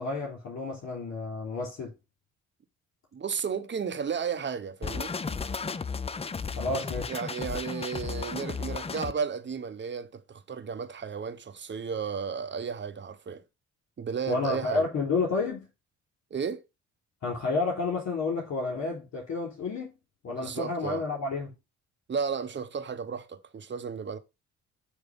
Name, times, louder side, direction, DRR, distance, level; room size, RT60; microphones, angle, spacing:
voice 1, 0.0-1.9 6.6-7.1 14.3-15.7 17.2-19.9 20.2-21.5, left 3 dB, 65° left, 3.4 m, -30 dB
voice 2, 3.1-5.1 7.1-13.4 14.0-14.9 16.3-16.6 20.3-21.0 22.1-24.2, right 6 dB, 40° right, 1.1 m, -33 dB
sound 1, 4.8-9.1, left 5 dB, 20° left, 0.5 m, -34 dB
8.1 x 3.3 x 5.3 m
cardioid pair, 90°, 30 cm